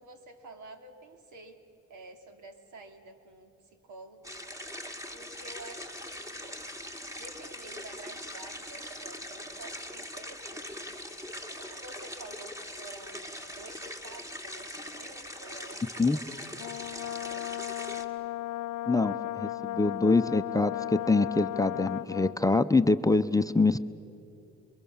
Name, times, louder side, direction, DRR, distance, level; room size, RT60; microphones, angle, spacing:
voice 1, 0.0-1.6 1.9-3.5 3.8-4.3 5.1-6.6 7.1-10.9 11.6-18.0, right 2 dB, 75° right, 6 dB, 2.8 m, -50 dB
sound 1, 4.2-18.0, left 1 dB, 10° right, 2.2 m, -41 dB
Brass instrument, 16.6-22.4, left 16 dB, 80° left, 0.6 m, -35 dB
voice 2, 18.9-23.8, left 3 dB, 10° left, 9 dB, 0.7 m, -25 dB
28.5 x 23.0 x 7.2 m, 2.8 s
cardioid pair, 90°, 30 cm